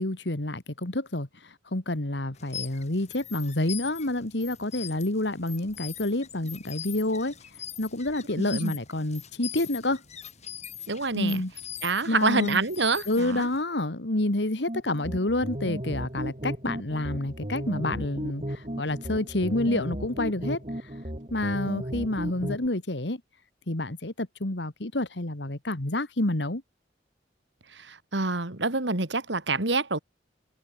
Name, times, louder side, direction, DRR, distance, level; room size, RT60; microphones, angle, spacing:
voice 1, 0.0-7.3 7.8-10.0 11.1-11.5 12.1-12.6 13.1-20.9 21.3-23.2 23.7-26.6, left 1 dB, 70° left, 2.1 m, -28 dB
sound 1, 2.3-13.6, left 9 dB, 40° left, 4.9 m, -42 dB
voice 2, 8.4-8.7 10.9-11.4 11.8-13.5 27.7-30.0, right 3 dB, 75° right, 2.7 m, -27 dB
sound 2, 14.7-22.7, equal, 35° right, 4.7 m, -35 dB
head